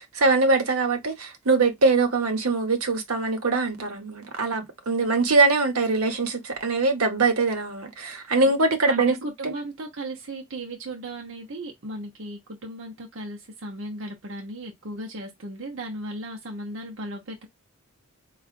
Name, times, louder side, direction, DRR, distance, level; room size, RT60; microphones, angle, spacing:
voice 1, 0.0-9.2 9.4-9.5, right 3 dB, 80° right, 1.1 m, -22 dB
voice 2, 8.8-17.5, right 1 dB, 60° right, 0.8 m, -36 dB
4.8 x 2.4 x 2.4 m
head